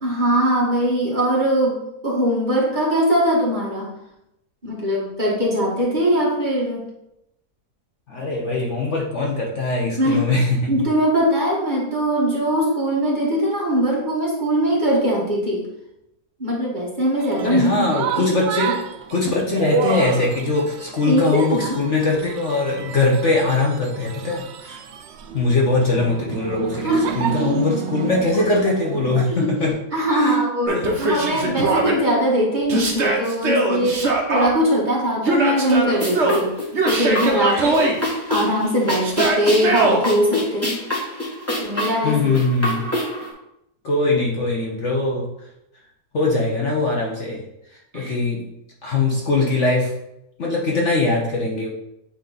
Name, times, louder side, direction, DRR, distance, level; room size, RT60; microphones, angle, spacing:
voice 1, 0.0-3.9 4.6-6.8 9.8-10.3 10.7-15.7 16.4-18.7 21.0-21.8 26.8-27.0 27.4-27.6 29.3-29.6 29.9-36.5 36.8-37.9 38.3-40.8 41.6-42.4 47.9-48.2, right 1 dB, 30° right, -5 dB, 1.5 m, -21 dB
voice 2, 8.1-10.7 17.4-18.8 19.1-24.8 25.3-26.9 27.1-29.7 30.1-30.4 42.0-42.8 43.8-45.3 46.1-47.4 47.9-48.4 48.8-49.9 50.4-51.7, left 3 dB, 50° left, -2 dB, 1.1 m, -21 dB
sound 1, 17.2-29.3, right 7 dB, 80° right, 0.6 m, -30 dB
Yell, 30.7-31.9 32.7-34.5 35.2-36.4 36.7-38.0 39.0-40.0, right 2 dB, 50° right, 1.1 m, -21 dB
sound 2, 35.9-43.3, left 1 dB, 10° left, 1.5 m, -26 dB
8.4 x 3.1 x 4.0 m, 0.83 s
omnidirectional pair, 1.7 m